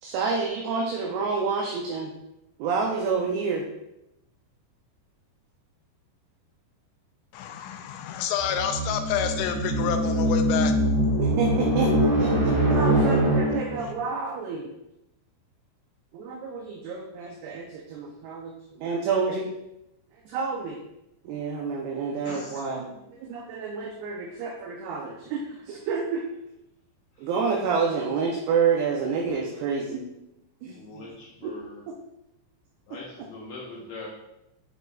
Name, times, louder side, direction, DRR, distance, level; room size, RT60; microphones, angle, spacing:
voice 1, 0.0-2.1 2.6-3.6 11.2-11.9 12.2-14.7 16.1-19.5 20.3-20.8 21.3-22.9 23.2-26.2 27.2-30.0 30.6-31.1 31.4-31.5, right 5 dB, 80° right, 2.3 m, -28 dB
voice 2, 7.3-10.8 12.8-12.9 13.5-13.9, left 9 dB, 90° left, 3.0 m, -29 dB
sound 1, 8.4-13.9, right 1 dB, 45° right, 3.3 m, -23 dB
voice 3, 22.2-22.6 30.9-31.8 32.9-34.1, left 2 dB, 75° left, 2.1 m, -41 dB
8.9 x 4.6 x 2.3 m
omnidirectional pair, 5.3 m